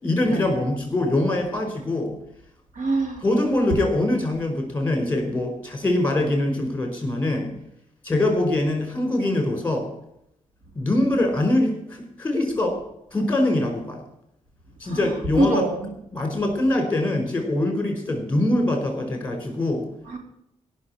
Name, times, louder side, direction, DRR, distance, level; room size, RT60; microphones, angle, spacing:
voice 1, 0.0-2.2 3.2-7.5 8.0-9.9 10.7-12.8 13.1-14.0 14.8-15.6 16.1-19.8, left 1 dB, 15° left, 4 dB, 4.9 m, -23 dB
voice 2, 2.7-3.2 14.8-15.9 20.1-20.2, right 2 dB, 85° right, 3 dB, 3.7 m, -25 dB
17.0 x 6.7 x 9.9 m, 0.77 s
wide cardioid pair, 145°, 13 cm